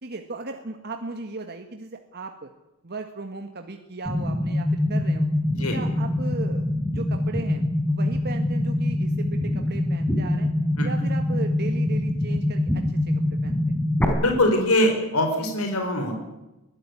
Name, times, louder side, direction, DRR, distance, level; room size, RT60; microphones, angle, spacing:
voice 1, 0.0-2.5 2.8-5.3 5.6-6.6 6.9-10.5 10.8-13.8, right 3 dB, 50° right, 5 dB, 1.8 m, -37 dB
sound 1, 4.1-14.1, left 1 dB, 10° left, 4.1 m, -24 dB
voice 2, 14.2-16.2, left 1 dB, 80° left, 4 dB, 5.1 m, -22 dB
23.0 x 16.5 x 9.8 m, 0.98 s
head